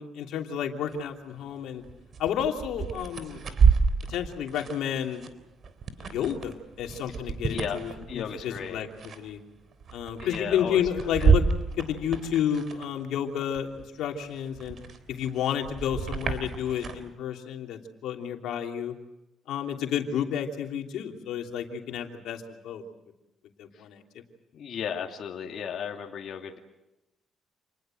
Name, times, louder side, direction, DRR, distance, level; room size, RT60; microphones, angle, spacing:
voice 1, 0.0-1.8 2.2-3.4 4.1-5.2 6.0-9.4 9.9-11.4 11.8-14.8 15.1-18.9 19.5-22.8 23.6-24.0, left 9 dB, 85° left, 2 dB, 3.1 m, -31 dB
sound 1, 0.8-1.0 1.4-13.2 13.6-17.0, right 5 dB, 55° right, 3.6 m, -29 dB
voice 2, 8.1-8.8 10.2-10.8 11.2-11.3 24.5-26.6, left 7 dB, 65° left, 0 dB, 2.6 m, -34 dB
28.5 x 20.5 x 7.8 m, 0.95 s
cardioid pair, 90°, 0 cm